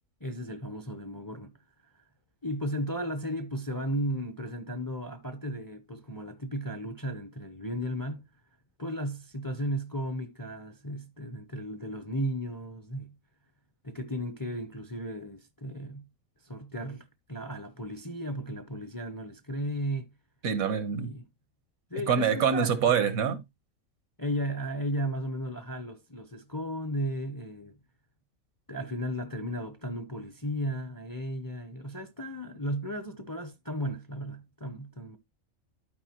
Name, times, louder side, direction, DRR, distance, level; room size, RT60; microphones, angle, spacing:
voice 1, 0.2-1.5 2.4-8.2 8.8-13.1 13.8-16.0 16.4-20.1 20.9-21.2 21.9-22.8 24.2-27.7 28.7-35.2, equal, 20° left, 0.5 m, -35 dB
voice 2, 20.4-21.1 22.1-23.4, right 7 dB, 90° right, 1.5 m, -25 dB
12.0 x 4.6 x 2.9 m
omnidirectional pair, 1.4 m